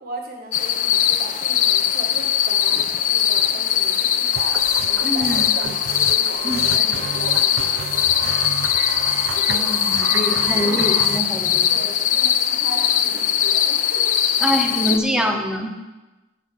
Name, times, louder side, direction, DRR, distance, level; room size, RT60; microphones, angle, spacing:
voice 1, 0.0-8.6 9.3-9.7 11.7-14.2, right 1 dB, 50° right, 1 dB, 1.5 m, -38 dB
sound 1, 0.5-15.0, left 10 dB, 40° left, 0.4 m, -20 dB
sound 2, 4.3-11.2, right 8 dB, 75° right, 0.3 m, -31 dB
voice 2, 5.0-5.4 6.4-7.0 9.3-11.7 14.4-15.7, equal, 5° right, 3 dB, 0.8 m, -25 dB
7.2 x 5.9 x 7.6 m, 1.1 s
head